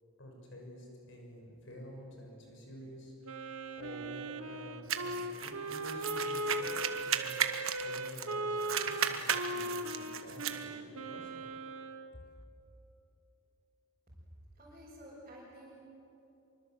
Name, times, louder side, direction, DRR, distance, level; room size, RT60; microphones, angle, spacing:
voice 1, 0.2-11.4 12.1-12.2, equal, 60° left, 1 dB, 6.6 m, -50 dB
Wind instrument woodwind instrument, 3.2-12.1, right 1 dB, 90° right, 1.3 m, -39 dB
sound 1, 4.9-8.3 8.6-10.6, right 8 dB, 70° right, 1.5 m, -35 dB
voice 2, 14.5-15.8, equal, 35° right, -7 dB, 6.1 m, -52 dB
25.5 x 24.5 x 8.0 m, 3.0 s
head